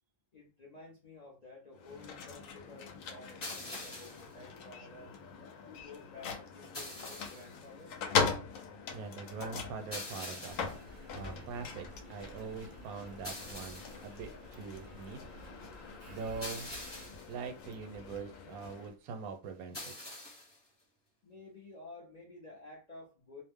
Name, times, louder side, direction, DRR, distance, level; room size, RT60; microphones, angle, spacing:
voice 1, 0.3-5.1 5.7-7.9 21.2-23.4, left 3 dB, 50° left, -4 dB, 0.5 m, -52 dB
sound 1, 1.7-18.9, left 5 dB, 70° left, 0.9 m, -41 dB
sound 2, 3.4-4.3 6.7-7.6 9.9-10.8 13.2-14.1 16.4-17.3 19.7-20.6, left 1 dB, 20° left, 0.9 m, -44 dB
voice 2, 8.9-10.6 11.1-15.2 16.1-16.7 17.3-19.9, right 5 dB, 85° right, 7 dB, 1.1 m, -43 dB
Engine, 10.5-18.3 18.9-19.0, right 1 dB, 65° right, 0.5 m, -53 dB
2.5 x 2.0 x 3.4 m, 0.34 s
omnidirectional pair, 1.5 m